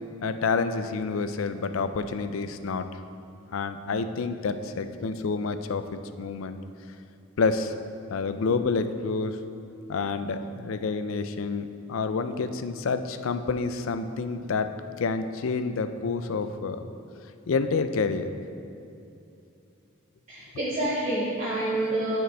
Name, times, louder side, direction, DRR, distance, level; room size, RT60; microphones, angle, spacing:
voice 1, 0.2-2.9 3.5-5.8 6.2-6.6 7.4-7.7 8.1-9.4 9.9-16.8 17.5-18.3, left 4 dB, 80° left, 9 dB, 0.4 m, -28 dB
voice 2, 20.3-22.2, right 1 dB, 35° right, -10 dB, 1.7 m, -28 dB
14.0 x 5.1 x 3.4 m, 2.7 s
head